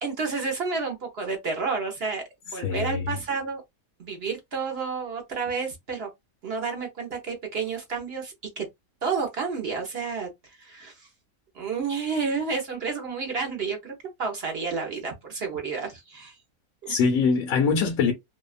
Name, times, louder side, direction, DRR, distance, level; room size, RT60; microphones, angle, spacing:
voice 1, 0.0-3.6 4.0-6.1 6.4-8.7 9.0-11.1 11.5-13.9 14.2-16.3 16.8-16.9, right 5 dB, 55° right, 0.8 m, -30 dB
voice 2, 2.6-3.1 16.9-18.1, left 5 dB, 80° left, 1.1 m, -23 dB
2.7 x 2.2 x 2.4 m
omnidirectional pair, 1.5 m